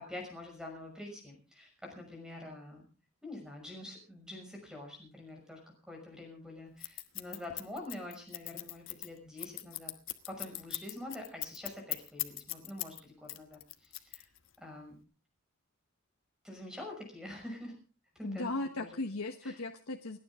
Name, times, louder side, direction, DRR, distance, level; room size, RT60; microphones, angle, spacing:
voice 1, 0.0-2.8 3.2-5.6 5.9-9.9 10.3-14.3 14.6-14.9 16.4-17.7 18.1-18.5 18.8-19.0 19.4-19.6, left 1 dB, 5° right, 2 dB, 5.9 m, -46 dB
Scissors, 6.8-13.0 13.3-14.6, left 16 dB, 60° left, 1.3 m, -39 dB
voice 2, 18.2-20.2, left 2 dB, 80° left, 3 dB, 1.3 m, -37 dB
29.5 x 9.9 x 3.6 m, 0.35 s
head